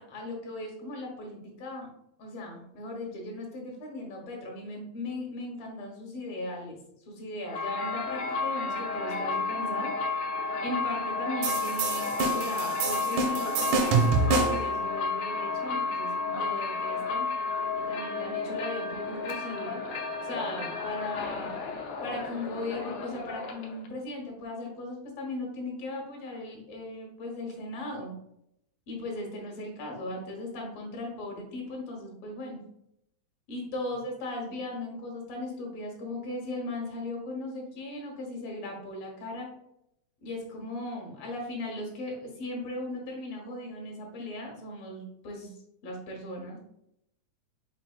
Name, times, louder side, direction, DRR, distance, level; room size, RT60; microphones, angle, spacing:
voice 1, 0.0-1.9 2.2-6.8 7.1-9.9 10.6-17.3 17.8-19.8 20.2-21.6 22.0-28.1 28.9-32.6 33.5-39.5 40.2-45.6 45.8-46.6, left 2 dB, 60° left, 0 dB, 1.7 m, -37 dB
sound 1, 7.4-23.9, left 4 dB, 85° left, 1.5 m, -32 dB
sound 2, 11.4-14.7, right 4 dB, 85° right, 2.1 m, -27 dB
5.7 x 4.0 x 2.3 m, 0.79 s
omnidirectional pair, 3.7 m